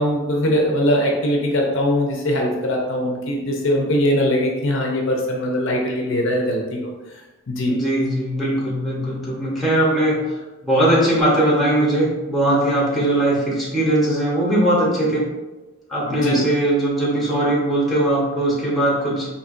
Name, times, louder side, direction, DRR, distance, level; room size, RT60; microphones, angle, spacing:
voice 1, 0.0-6.9 7.5-7.8 16.1-16.4, equal, 60° left, 0 dB, 0.6 m, -21 dB
voice 2, 7.7-15.2 15.9-19.3, right 1 dB, ahead, -6 dB, 1.0 m, -20 dB
4.4 x 2.9 x 2.5 m, 1.2 s
head